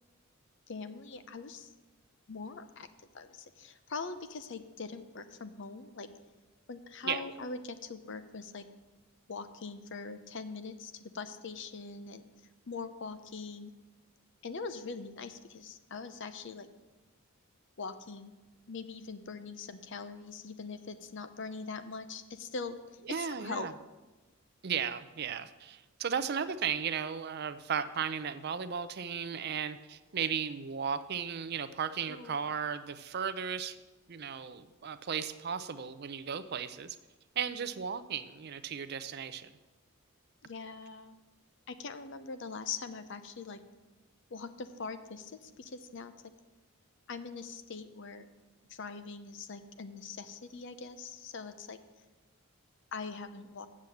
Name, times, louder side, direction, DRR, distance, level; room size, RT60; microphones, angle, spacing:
voice 1, 0.7-1.7 2.3-2.9 3.1-6.1 6.7-8.6 9.3-12.2 12.7-13.7 14.4-16.7 17.8-18.3 18.7-22.8 23.1-23.7 32.1-32.4 40.4-41.2 41.7-43.6 44.3-46.1 47.1-48.3 48.7-51.8 52.9-53.7, left 4 dB, 55° left, 11 dB, 0.6 m, -42 dB
voice 2, 23.1-23.7 24.6-33.8 34.1-37.0 37.4-39.5, right 7 dB, 45° right, 13 dB, 0.5 m, -35 dB
7.4 x 7.1 x 7.7 m, 1.2 s
head